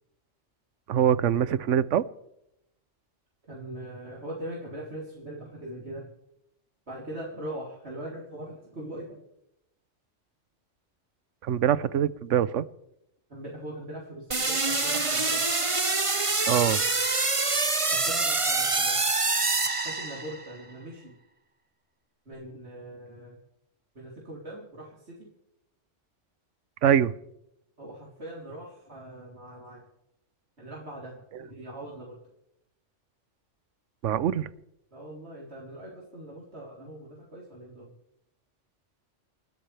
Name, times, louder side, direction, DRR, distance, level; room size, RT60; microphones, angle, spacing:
voice 1, 0.9-2.0 11.4-12.6 16.5-16.8 26.8-27.1 34.0-34.5, right 9 dB, 80° right, 17 dB, 1.1 m, -23 dB
voice 2, 3.5-6.1 6.9-9.2 13.3-15.5 17.9-19.1 19.8-21.2 22.3-23.4 23.9-25.3 27.8-29.8 30.6-32.2 34.9-37.9, right 1 dB, 60° right, -4 dB, 4.0 m, -41 dB
sound 1, 14.3-20.5, right 3 dB, 25° right, 1.2 m, -26 dB
29.0 x 13.5 x 3.4 m, 0.81 s
omnidirectional pair, 1.3 m